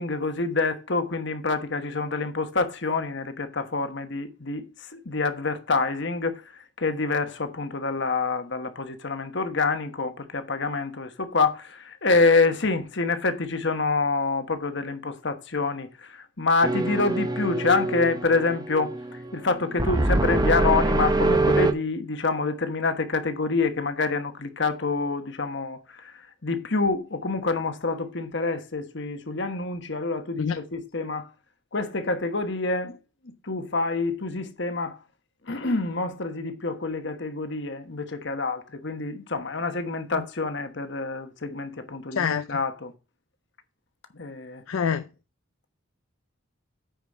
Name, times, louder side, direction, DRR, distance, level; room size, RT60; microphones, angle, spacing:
voice 1, 0.0-31.3 31.7-33.0 33.2-35.0 35.4-42.9 44.1-44.6, left 3 dB, 55° left, 1.2 m, -27 dB
sound 1, 16.6-21.7, right 2 dB, 20° right, 0.8 m, -24 dB
voice 2, 42.1-42.5 44.7-45.0, left 6 dB, 75° left, 0.5 m, -25 dB
9.4 x 5.1 x 4.8 m
head